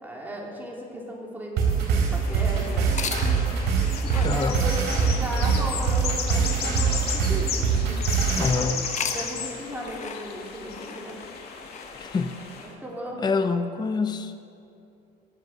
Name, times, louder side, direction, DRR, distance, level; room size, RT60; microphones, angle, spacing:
voice 1, 0.0-3.5 4.0-7.6 9.1-11.2 11.9-12.0 12.8-13.2, equal, 10° right, -3 dB, 3.8 m, -36 dB
sound 1, 1.6-8.5, right 6 dB, 80° right, 4.0 m, -24 dB
sound 2, 2.1-12.7, left 6 dB, 70° left, 2.1 m, -35 dB
sound 3, 2.9-8.2 8.7-12.7, left 6 dB, 45° left, 1.2 m, -39 dB
voice 2, 4.2-4.6 8.4-8.9 11.9-12.4 13.2-14.3, left 4 dB, 25° left, 9 dB, 0.7 m, -26 dB
21.5 x 8.3 x 6.5 m, 2.6 s
cardioid pair, 110°, 17 cm